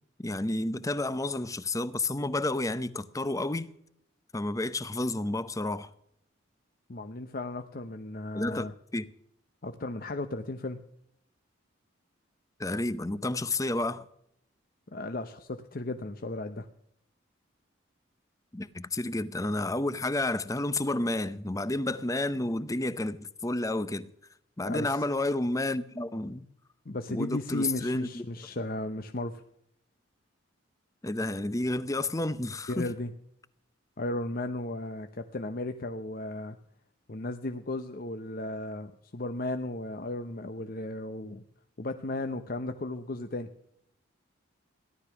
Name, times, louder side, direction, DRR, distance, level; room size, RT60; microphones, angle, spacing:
voice 1, 0.2-3.7 4.3-5.9 8.3-8.7 8.9-9.1 12.6-14.1 18.5-24.1 24.6-26.5 27.1-28.2 31.0-32.9, left 2 dB, 15° left, 0.7 m, -30 dB
voice 2, 6.9-8.7 9.6-10.8 14.9-16.7 24.6-25.0 26.9-29.4 32.7-33.1 34.0-36.6 37.1-41.4 41.8-43.5, left 2 dB, 45° left, 0.8 m, -35 dB
17.0 x 12.0 x 5.9 m
head